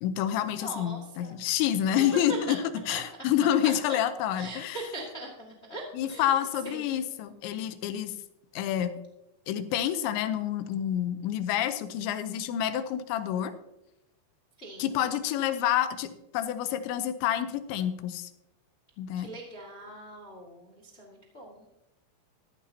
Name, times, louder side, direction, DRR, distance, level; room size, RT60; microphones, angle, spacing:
voice 1, 0.0-4.8 5.9-8.2 8.5-9.0 9.5-13.5 14.8-18.3 19.0-19.3, left 10 dB, 90° left, 10 dB, 3.0 m, -28 dB
voice 2, 0.5-1.3 1.9-2.5 2.9-3.0 3.6-4.0 4.3-6.4 6.6-6.9 14.6-14.9 19.1-21.7, right 2 dB, 75° left, -1 dB, 0.6 m, -40 dB
14.0 x 14.0 x 2.8 m, 0.89 s
omnidirectional pair, 5.2 m